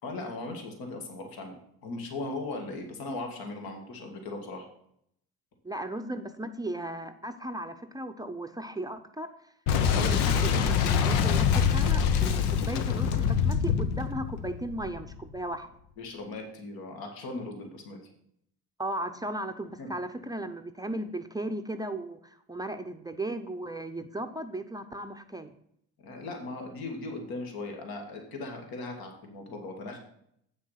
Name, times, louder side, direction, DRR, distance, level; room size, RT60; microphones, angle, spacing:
voice 1, 0.0-4.7 16.0-18.0 19.8-19.9 26.0-30.0, left 2 dB, 65° left, 3 dB, 2.1 m, -38 dB
voice 2, 5.6-15.7 18.8-25.5, right 1 dB, 10° right, 6 dB, 0.6 m, -36 dB
Boom, 9.7-15.2, left 7 dB, 90° left, 0.9 m, -25 dB
8.3 x 6.2 x 5.7 m, 0.71 s
cardioid pair, 95°, 38 cm